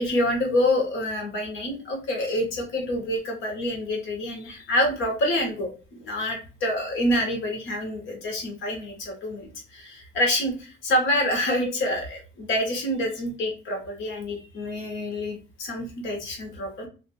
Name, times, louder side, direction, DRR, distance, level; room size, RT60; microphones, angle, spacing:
voice 1, 0.0-16.9, left 1 dB, 90° left, 1 dB, 1.3 m, -27 dB
2.8 x 2.5 x 4.2 m, 0.34 s
cardioid pair, 90°, 20 cm